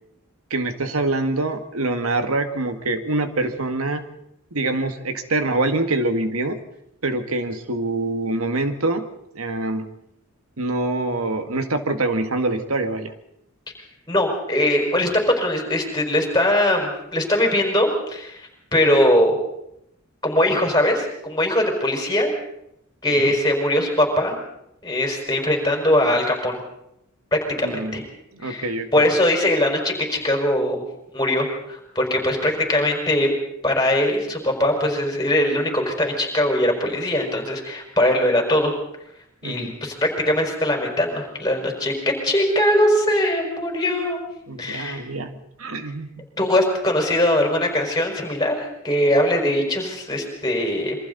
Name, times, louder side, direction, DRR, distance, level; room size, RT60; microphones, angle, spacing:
voice 1, 0.5-4.0 4.5-6.6 7.0-9.1 9.3-9.9 10.6-13.1 23.1-23.3 27.6-28.1 28.3-29.0 39.4-39.7 44.5-45.3 45.6-46.2, right 2 dB, 90° right, 7 dB, 1.9 m, -25 dB
voice 2, 14.1-18.4 18.7-19.4 20.2-22.3 23.0-24.4 24.8-26.6 27.3-28.0 28.4-28.7 28.9-30.8 31.1-33.3 33.6-38.7 39.4-41.9 42.2-44.2 44.6-45.0 46.4-51.0, left 1 dB, 20° left, 1 dB, 5.5 m, -21 dB
27.5 x 24.0 x 4.2 m, 0.79 s
head